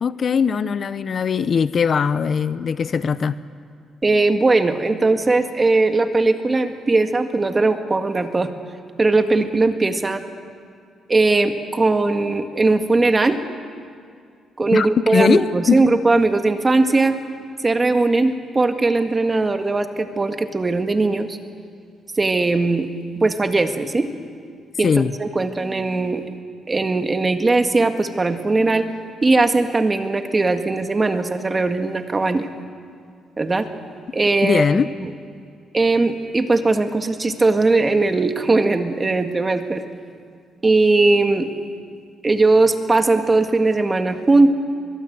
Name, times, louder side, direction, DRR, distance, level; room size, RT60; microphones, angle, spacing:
voice 1, 0.0-3.4 14.7-15.8 24.8-25.1 34.4-34.9, left 6 dB, 50° left, 14 dB, 0.7 m, -20 dB
voice 2, 4.0-8.5 9.0-10.2 11.1-13.4 14.6-17.2 17.6-21.4 22.2-22.9 23.2-24.1 24.8-24.9 25.2-26.2 26.7-28.9 29.2-32.5 33.4-33.7 34.1-35.1 35.7-39.8 40.6-41.5 42.2-44.5, right 3 dB, 25° right, 7 dB, 1.8 m, -19 dB
23.5 x 21.5 x 8.1 m, 2.3 s
cardioid pair, 90°, 0 cm